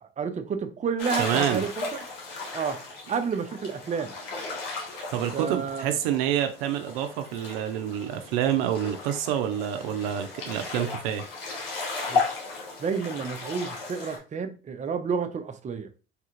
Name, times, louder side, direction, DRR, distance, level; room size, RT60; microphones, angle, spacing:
voice 1, 0.0-2.0 2.5-2.8 3.1-4.1 5.3-5.9 12.1-12.2 12.8-15.9, right 6 dB, 25° right, 0.5 m, -30 dB
sound 1, 1.0-14.2, left 4 dB, 85° left, 0.9 m, -35 dB
voice 2, 1.2-1.6 5.1-11.3, right 10 dB, 80° right, 0.5 m, -27 dB
3.3 x 2.4 x 3.0 m
hypercardioid pair, 65°, 29 cm